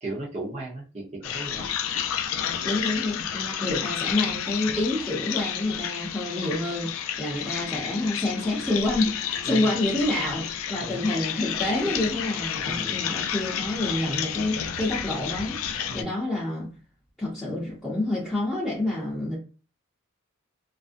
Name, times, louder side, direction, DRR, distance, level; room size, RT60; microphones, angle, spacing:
voice 1, 0.0-1.7 9.5-9.7 10.8-11.0 12.6-13.1 15.9-16.1, right 2 dB, 30° right, 0.7 m, -36 dB
sound 1, 1.2-16.0, left 9 dB, 85° left, 0.3 m, -31 dB
voice 2, 2.6-15.6 15.9-16.7 17.2-19.4, left 2 dB, ahead, 0.7 m, -28 dB
2.4 x 2.0 x 2.5 m
head